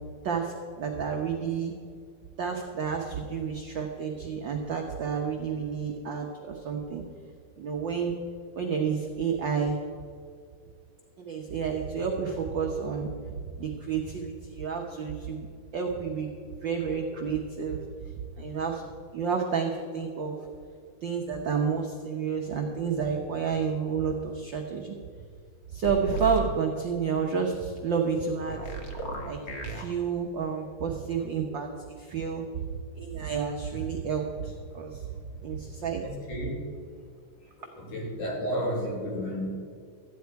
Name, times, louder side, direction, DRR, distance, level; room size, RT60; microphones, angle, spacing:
voice 1, 0.2-1.7 2.4-7.0 7.6-8.1 8.5-9.8 11.2-16.3 16.6-17.8 18.4-18.8 19.1-20.4 21.0-25.0 25.7-28.6 29.2-29.4 29.6-32.6 32.9-35.1 35.4-36.0, right 6 dB, 75° right, 1 dB, 1.0 m, -30 dB
sound 1, 25.8-26.5 28.5-29.8, right 4 dB, 55° left, 0.7 m, -34 dB
voice 2, 36.0-36.7 37.6-39.6, equal, 85° left, -1 dB, 3.9 m, -32 dB
14.0 x 9.7 x 4.6 m, 2.3 s
omnidirectional pair, 3.5 m